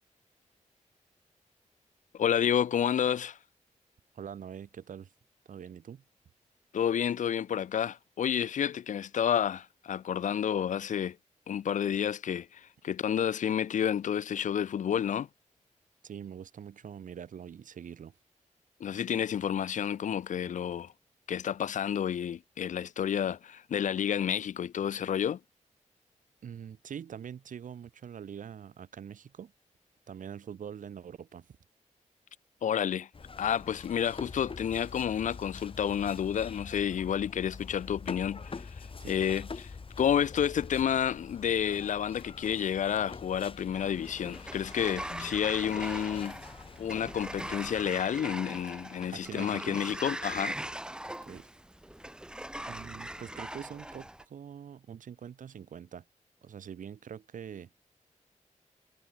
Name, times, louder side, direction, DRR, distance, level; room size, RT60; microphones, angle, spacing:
voice 1, 2.1-3.4 6.7-11.2 11.5-15.3 18.8-20.9 21.3-25.4 32.6-33.1 33.4-46.4 46.8-50.6, left 9 dB, 75° left, 0.6 m, -30 dB
voice 2, 4.1-5.1 5.5-6.0 16.0-18.1 26.4-29.5 30.1-31.5 39.0-39.1 49.1-49.8 51.3-51.5 52.7-56.0 56.4-57.7, right 8 dB, 90° right, 3.8 m, -44 dB
sound 1, 33.1-47.9, left 4 dB, 45° left, 5.2 m, -45 dB
Sliding door, 43.7-54.2, right 1 dB, 5° right, 0.7 m, -41 dB
wide cardioid pair, 105°, 13 cm